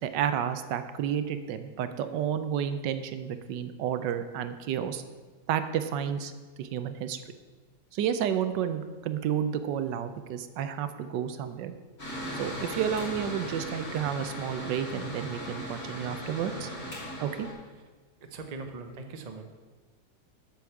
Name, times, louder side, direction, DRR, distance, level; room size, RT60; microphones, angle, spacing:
voice 1, 0.0-5.0 5.5-6.3 6.6-7.2 7.9-11.7 12.3-16.7 17.2-17.5, right 9 dB, 70° right, 10 dB, 1.2 m, -31 dB
Mechanical fan, 12.0-17.5, equal, 30° left, 3.6 m, -38 dB
voice 2, 18.2-19.4, right 3 dB, 50° right, 5 dB, 0.4 m, -40 dB
8.1 x 6.3 x 7.0 m, 1.4 s
omnidirectional pair, 2.1 m